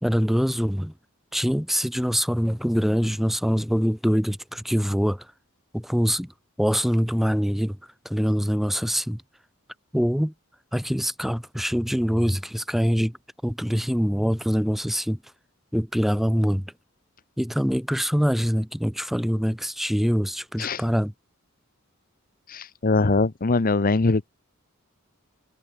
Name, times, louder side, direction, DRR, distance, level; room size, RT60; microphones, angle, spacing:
voice 1, 0.0-0.9 1.3-5.2 5.7-6.3 6.6-7.8 8.0-9.2 9.9-10.3 10.7-13.2 13.4-15.2 15.7-16.7 17.4-21.1, equal, ahead, 1.5 m, -24 dB
voice 2, 22.5-24.3, left 3 dB, 45° left, 0.8 m, -22 dB
head